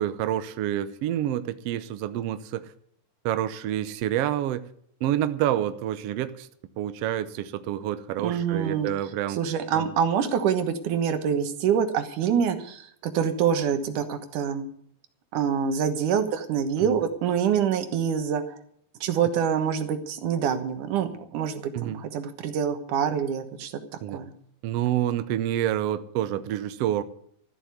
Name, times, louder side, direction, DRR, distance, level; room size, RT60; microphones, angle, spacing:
voice 1, 0.0-2.7 3.2-4.6 5.0-6.5 6.8-9.4 9.7-9.9 16.8-17.0 21.7-22.0 24.0-24.2 24.6-27.0, right 11 dB, 70° right, 1.6 m, -28 dB
voice 2, 8.2-8.9 9.4-14.7 15.3-18.4 19.0-23.7 24.1-24.3, right 7 dB, 85° right, 2.8 m, -26 dB
13.5 x 8.1 x 9.3 m
omnidirectional pair, 3.5 m